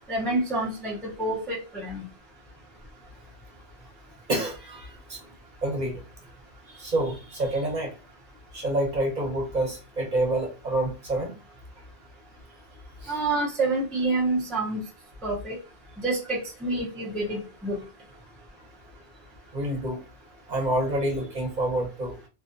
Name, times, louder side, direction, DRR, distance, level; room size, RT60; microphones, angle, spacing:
voice 1, 0.1-2.1 13.1-14.8 15.2-15.6 16.0-17.8, right 2 dB, ahead, -3 dB, 0.4 m, -28 dB
voice 2, 4.3-5.2 5.6-6.0 6.7-7.9 8.5-11.3 13.0-13.4 19.5-20.0 20.5-22.2, right 1 dB, 45° right, -2 dB, 0.9 m, -28 dB
2.5 x 2.2 x 2.5 m, 0.30 s
omnidirectional pair, 1.1 m